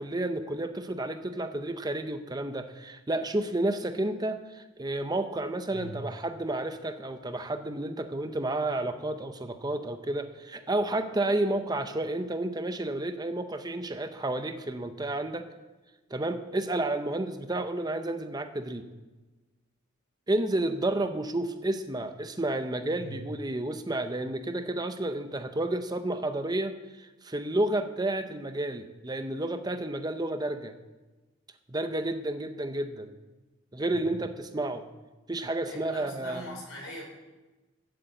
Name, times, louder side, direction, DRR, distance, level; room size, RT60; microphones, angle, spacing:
voice 1, 0.0-15.5 16.1-18.8 20.3-30.7 31.7-33.1 33.7-34.8 35.3-36.4, right 1 dB, 20° right, 8 dB, 0.7 m, -31 dB
voice 2, 23.0-23.3 33.9-34.0 35.6-37.0, equal, 75° left, 0 dB, 4.2 m, -42 dB
11.5 x 8.2 x 8.0 m, 1.2 s
head